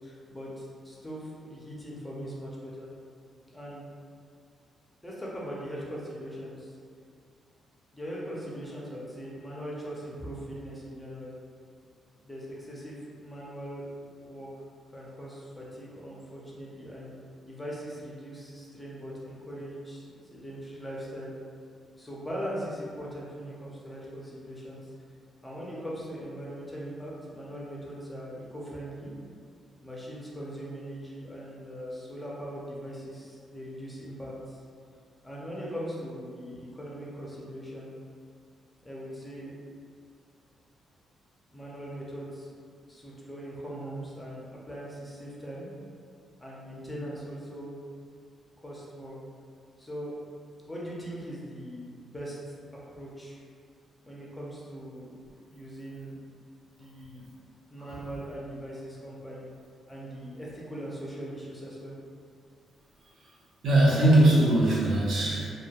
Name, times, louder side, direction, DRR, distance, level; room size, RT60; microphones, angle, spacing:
voice 1, 0.0-2.9 3.5-3.8 5.0-6.8 7.9-11.3 12.2-13.9 14.2-14.5 14.9-17.1 17.4-21.3 22.0-24.9 25.4-29.1 29.8-34.6 35.2-37.9 38.8-39.5 41.5-42.5 42.8-45.8 46.4-47.8 48.6-49.2 49.8-50.2 50.7-53.4 54.0-56.1 56.7-57.3 57.7-59.5 59.9-61.9, equal, 10° left, -5 dB, 0.5 m, -40 dB
voice 2, 63.6-65.5, right 1 dB, 65° right, -5 dB, 0.6 m, -21 dB
2.1 x 2.1 x 2.8 m, 2.2 s
cardioid pair, 120°, 0 cm